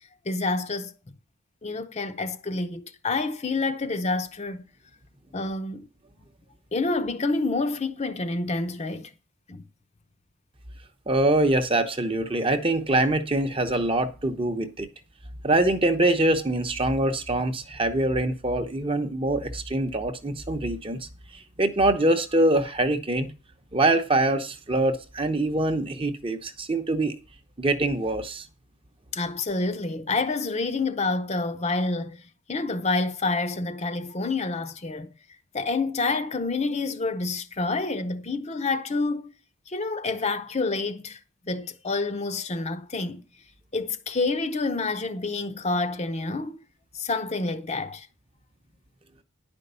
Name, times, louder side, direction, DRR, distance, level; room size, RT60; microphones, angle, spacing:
voice 1, 0.3-0.9 1.6-4.6 5.3-5.9 6.7-9.1 9.5-9.6 29.1-32.2 32.5-35.1 35.5-39.3 39.7-41.2 41.5-43.2 43.7-46.6 46.9-48.1, left 3 dB, 30° left, 0.7 m, -28 dB
voice 2, 11.1-14.9 15.4-21.1 21.6-23.3 23.7-27.1 27.6-28.4, right 2 dB, 25° right, 0.8 m, -24 dB
10.5 x 5.3 x 6.8 m
head